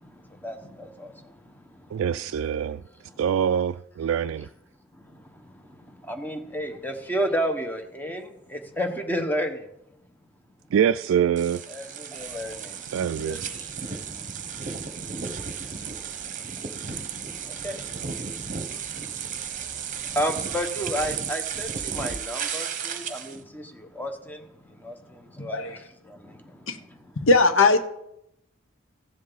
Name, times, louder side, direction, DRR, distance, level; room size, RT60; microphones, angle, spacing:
voice 1, 0.0-2.0 2.3-2.4 3.1-3.2 4.9-9.7 11.7-26.7, equal, 10° left, 1.2 m, -34 dB
voice 2, 1.9-2.8 3.2-4.5 10.7-11.6 12.9-13.4, right 8 dB, 90° right, 0.3 m, -24 dB
sound 1, 11.4-23.4, right 7 dB, 40° right, 1.0 m, -34 dB
voice 3, 27.2-27.8, left 3 dB, 80° left, 1.1 m, -19 dB
15.5 x 7.5 x 4.0 m
head